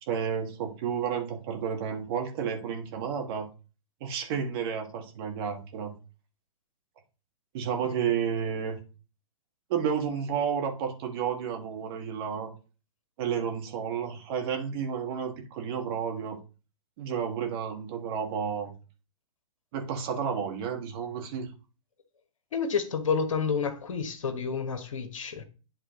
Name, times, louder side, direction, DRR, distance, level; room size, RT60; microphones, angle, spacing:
voice 1, 0.1-3.5 4.0-6.0 7.5-8.8 9.7-12.5 13.2-16.4 17.0-18.7 19.7-21.5, right 7 dB, 45° right, 1.8 m, -31 dB
voice 2, 7.8-8.1 22.5-25.4, left 6 dB, 65° left, 1.3 m, -30 dB
10.5 x 3.7 x 3.8 m
figure-of-eight pair, 120°, 18 cm